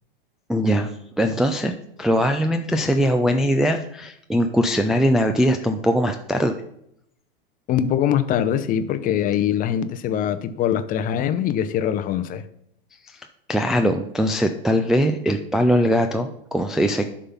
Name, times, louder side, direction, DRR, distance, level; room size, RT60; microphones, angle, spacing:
voice 1, 0.5-1.7 2.0-6.6 13.5-17.1, equal, ahead, 0.3 m, -21 dB
voice 2, 7.7-12.5, left 9 dB, 30° left, 0.7 m, -23 dB
11.0 x 3.8 x 5.7 m
hypercardioid pair, 105°, 29 cm